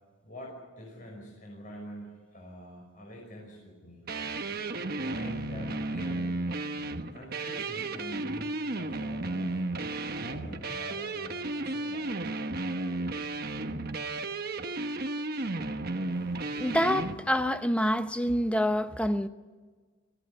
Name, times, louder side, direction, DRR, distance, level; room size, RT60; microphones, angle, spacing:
voice 1, 0.2-4.0 5.0-6.5 7.1-9.6 10.2-12.2, equal, 40° left, 5.8 m, -45 dB
sound 1, 4.1-17.1, right 2 dB, 45° right, 1.2 m, -33 dB
voice 2, 16.5-19.3, equal, 5° left, 0.8 m, -27 dB
24.0 x 16.0 x 10.0 m
head